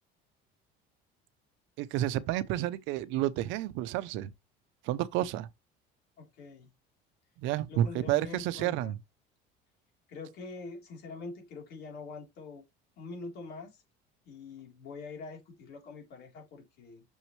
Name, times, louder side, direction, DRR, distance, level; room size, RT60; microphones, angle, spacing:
voice 1, 1.8-4.3 4.8-5.5 7.4-9.0, right 13 dB, 70° right, 0.7 m, -30 dB
voice 2, 6.2-6.7 7.7-8.9 10.1-12.6 13.0-13.8 14.3-17.0, left 4 dB, 55° left, 3.7 m, -44 dB
6.4 x 6.1 x 3.2 m
cardioid pair, 155°, 20 cm